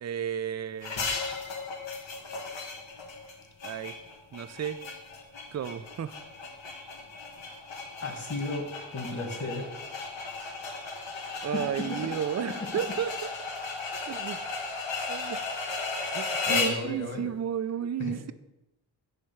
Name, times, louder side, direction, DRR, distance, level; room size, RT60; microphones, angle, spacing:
voice 1, 0.0-1.0 3.6-4.0 4.3-4.8 5.5-6.2 11.4-13.3 14.1-14.4 15.1-15.4 16.1-18.3, right 8 dB, 40° right, 14 dB, 0.5 m, -33 dB
sound 1, 0.8-16.9, left 4 dB, 85° left, 1.7 m, -35 dB
voice 2, 8.0-9.7 11.0-12.1 16.5-17.3 18.0-18.2, left 2 dB, 40° left, 3 dB, 2.0 m, -35 dB
10.5 x 3.5 x 7.0 m, 0.93 s
wide cardioid pair, 95°, 44 cm